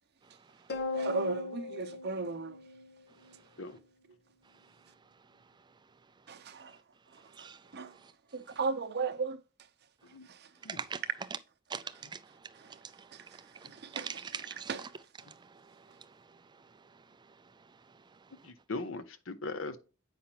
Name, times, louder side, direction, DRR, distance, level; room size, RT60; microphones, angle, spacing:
sound 1, 0.7-3.3, left 3 dB, 55° left, 1.0 m, -38 dB
voice 1, 0.9-2.6 6.3-6.7 7.7-7.9 8.3-9.4 14.0-14.1 14.7-14.8, right 4 dB, 55° right, 0.8 m, -34 dB
voice 2, 10.7-11.0 11.7-14.9 15.2-16.2, right 6 dB, 20° right, 0.4 m, -44 dB
voice 3, 18.4-19.8, left 3 dB, 80° left, 0.8 m, -39 dB
8.4 x 5.6 x 2.9 m
head